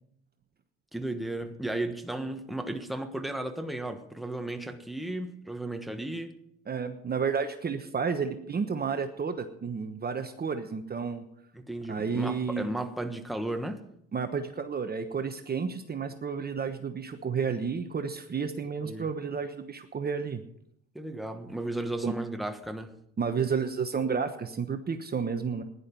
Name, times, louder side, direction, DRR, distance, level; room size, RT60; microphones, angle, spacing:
voice 1, 0.9-6.3 11.5-13.8 18.9-19.1 20.9-22.9, right 1 dB, ahead, 6 dB, 1.4 m, -34 dB
voice 2, 6.7-11.2 11.9-12.7 14.1-20.4 22.0-22.2 23.2-25.6, right 6 dB, 30° right, 7 dB, 1.1 m, -31 dB
15.5 x 11.0 x 5.4 m, 0.74 s
supercardioid pair, 95°, 33 cm